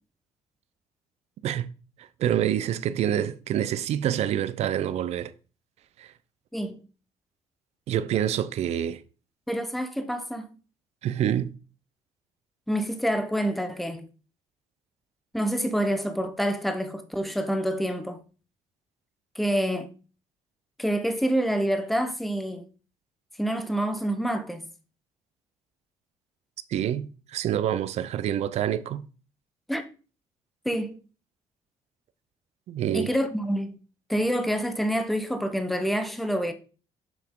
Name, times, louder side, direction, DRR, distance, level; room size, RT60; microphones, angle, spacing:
voice 1, 2.2-5.3 6.0-6.1 7.9-9.0 11.0-11.5 26.7-29.1 32.7-33.1, right 10 dB, 65° right, 0.6 m, -27 dB
voice 2, 9.5-10.6 12.7-14.1 15.3-18.2 19.4-19.9 20.8-22.7 23.4-24.7 29.7-29.8 30.6-31.0 32.9-33.8 34.1-36.5, equal, ahead, 0.8 m, -27 dB
7.2 x 6.0 x 3.7 m
cardioid pair, 125°, 12 cm